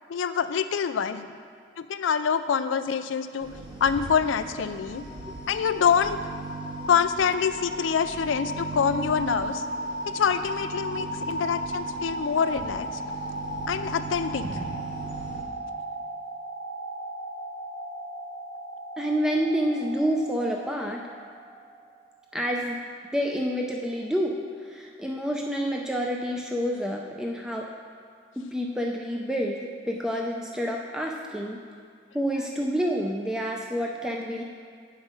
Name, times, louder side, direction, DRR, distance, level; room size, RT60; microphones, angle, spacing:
voice 1, 0.1-1.3 1.8-3.5 3.8-5.0 5.5-6.2 6.9-9.6 10.1-13.0 13.7-14.5, left 7 dB, 90° left, 11 dB, 0.4 m, -25 dB
sound 1, 3.4-15.4, right 4 dB, 25° right, 1.1 m, -39 dB
sound 2, 4.7-22.2, equal, 75° right, 1.4 m, -37 dB
voice 2, 19.0-21.0 22.3-22.8 23.1-27.7 28.4-31.6 32.1-34.4, equal, 5° right, 0 dB, 0.4 m, -28 dB
8.2 x 5.2 x 5.4 m, 2.2 s
head